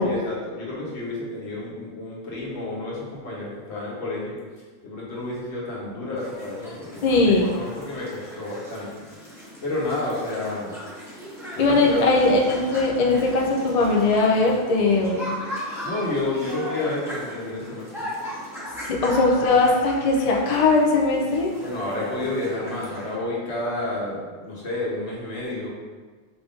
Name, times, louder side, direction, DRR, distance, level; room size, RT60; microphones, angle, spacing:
voice 1, 0.0-4.3 4.8-8.9 9.6-10.7 11.5-12.3 15.8-17.9 21.6-25.7, left 2 dB, 85° left, -5 dB, 1.4 m, -30 dB
sound 1, 6.2-23.1, equal, 5° right, 1.1 m, -37 dB
voice 2, 7.0-7.5 11.6-15.3 18.9-21.5, left 3 dB, 45° left, -1 dB, 0.5 m, -20 dB
4.8 x 2.6 x 3.5 m, 1.4 s
omnidirectional pair, 1.1 m